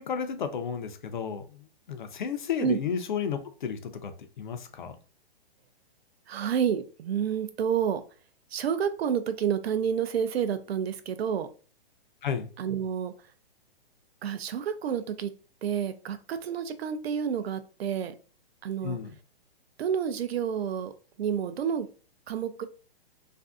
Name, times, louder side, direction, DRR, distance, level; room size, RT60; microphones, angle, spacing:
voice 1, 0.0-5.0 12.2-12.5 18.8-19.1, left 7 dB, 55° left, 0.4 m, -33 dB
voice 2, 6.3-8.0 8.5-11.5 12.6-13.1 14.2-15.3 15.6-18.1 18.6-19.0 19.8-20.9 21.2-21.9 22.3-22.7, right 8 dB, 80° right, 0.5 m, -29 dB
2.5 x 2.5 x 2.3 m
hypercardioid pair, 175°, 30 cm